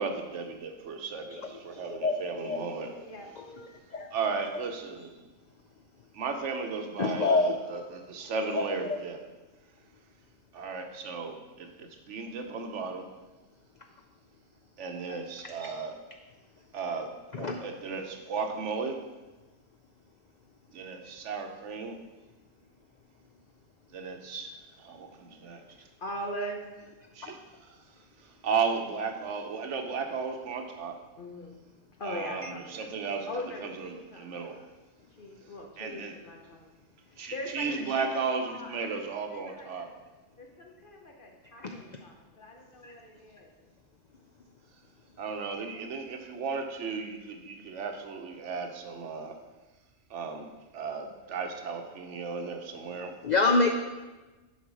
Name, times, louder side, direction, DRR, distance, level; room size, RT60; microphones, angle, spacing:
voice 1, 0.0-2.9 4.1-5.1 6.1-9.2 10.5-13.1 14.8-16.0 16.7-19.0 20.7-22.0 23.9-25.9 27.1-27.8 28.2-31.0 32.0-33.3 33.6-34.6 35.8-36.1 37.2-39.9 45.2-49.4 50.1-53.2, right 5 dB, 65° right, 5 dB, 1.0 m, -35 dB
voice 2, 1.3-2.7 2.9-3.0 3.4-4.1 4.4-4.5 7.0-7.8 8.5-8.6 15.1-15.7 17.3-17.6 37.9-38.1 41.6-42.0 42.8-42.9 53.2-53.8, left 3 dB, 70° left, 4 dB, 0.4 m, -29 dB
voice 3, 25.8-26.7 31.2-31.6 32.0-34.6 35.2-36.7 37.1-39.9 40.4-43.7, equal, 45° left, 1 dB, 1.0 m, -42 dB
7.2 x 4.5 x 6.1 m, 1.2 s
omnidirectional pair, 1.4 m